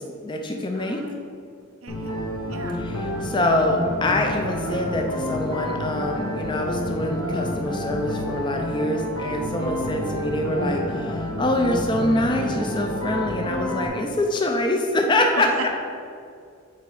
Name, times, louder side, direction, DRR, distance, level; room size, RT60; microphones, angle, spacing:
voice 1, 0.0-1.0 2.8-15.5, left 1 dB, 20° left, 2 dB, 0.4 m, -25 dB
voice 2, 0.7-1.3 1.8-2.1 2.5-2.8 9.6-10.0 15.3-15.8, right 3 dB, 85° right, 4 dB, 0.7 m, -36 dB
sound 1, 1.9-13.9, left 1 dB, 75° left, 1.7 m, -29 dB
8.4 x 3.9 x 4.7 m, 2.3 s
head